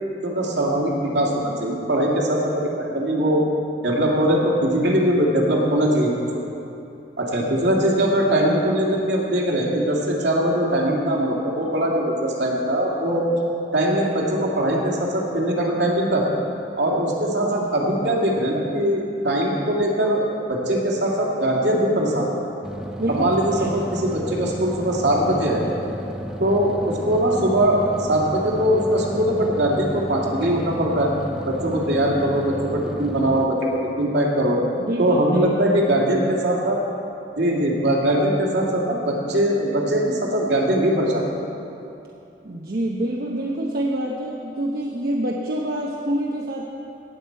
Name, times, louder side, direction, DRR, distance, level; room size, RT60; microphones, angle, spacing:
voice 1, 0.2-3.4 3.8-6.1 7.2-13.3 13.7-16.2 16.8-20.2 20.5-22.3 23.1-25.6 26.4-31.1 31.5-34.6 35.0-36.8 37.4-41.3, right 1 dB, 75° right, -3 dB, 2.3 m, -21 dB
sound 1, 22.6-33.5, equal, 5° right, 0.6 m, -33 dB
voice 2, 23.0-23.3 23.6-23.8 34.8-35.5 42.4-46.7, right 1 dB, 55° right, -2 dB, 0.8 m, -26 dB
17.5 x 8.0 x 4.6 m, 2.8 s
head